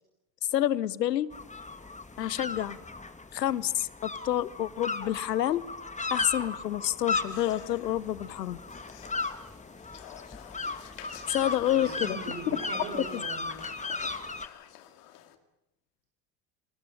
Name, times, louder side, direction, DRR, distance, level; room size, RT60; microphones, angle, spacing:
voice 1, 0.5-1.3 2.2-2.8 3.3-5.6 6.1-8.6 11.3-12.2 13.1-13.2, left 12 dB, 85° left, 21 dB, 1.0 m, -28 dB
sound 1, 1.3-14.5, left 3 dB, 15° left, 2.3 m, -36 dB
sound 2, 7.0-15.4, left 12 dB, 70° left, 2.4 m, -49 dB
voice 2, 11.6-13.6, right 5 dB, 80° right, 6 dB, 5.8 m, -41 dB
28.5 x 20.0 x 9.1 m, 0.88 s
hypercardioid pair, 65°, 48 cm